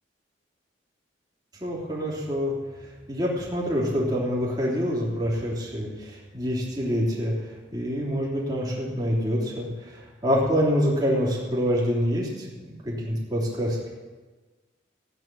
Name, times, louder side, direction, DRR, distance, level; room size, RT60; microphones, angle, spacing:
voice 1, 1.6-2.5 3.1-7.3 7.7-13.9, equal, 20° right, -4 dB, 3.2 m, -26 dB
14.5 x 9.3 x 6.1 m, 1.3 s
head